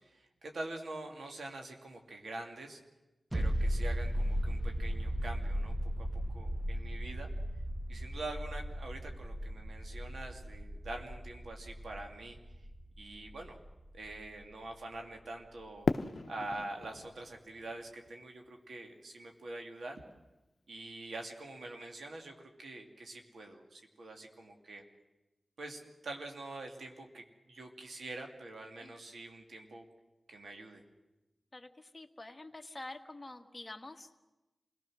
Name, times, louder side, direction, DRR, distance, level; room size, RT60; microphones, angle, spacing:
voice 1, 0.0-2.8 3.3-5.7 6.1-7.3 7.9-12.4 13.0-13.6 13.9-15.9 16.3-20.0 20.7-24.8 25.6-29.9 30.3-30.8, right 2 dB, 90° right, 3 dB, 2.5 m, -45 dB
sound 1, 3.3-14.6 14.9-15.0, equal, 25° right, 1.4 m, -36 dB
Fireworks, 15.8-18.9, left 4 dB, 65° left, 0.8 m, -37 dB
voice 2, 28.8-29.1 31.5-34.1, left 2 dB, 25° left, 3 dB, 1.6 m, -48 dB
27.5 x 18.0 x 6.3 m, 1.0 s
cardioid pair, 55°, 0 cm